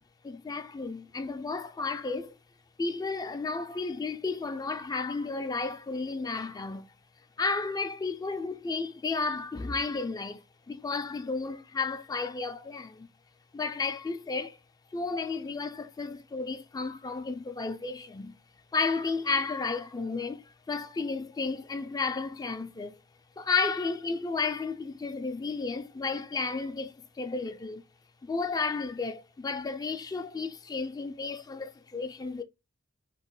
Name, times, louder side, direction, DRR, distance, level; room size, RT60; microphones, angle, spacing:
voice 1, 0.2-2.4 2.8-6.9 7.4-10.4 10.7-13.1 13.5-14.6 14.9-18.3 18.7-23.0 23.4-27.8 28.3-32.4, left 4 dB, 20° left, 0.3 m, -32 dB
3.0 x 2.3 x 3.7 m
head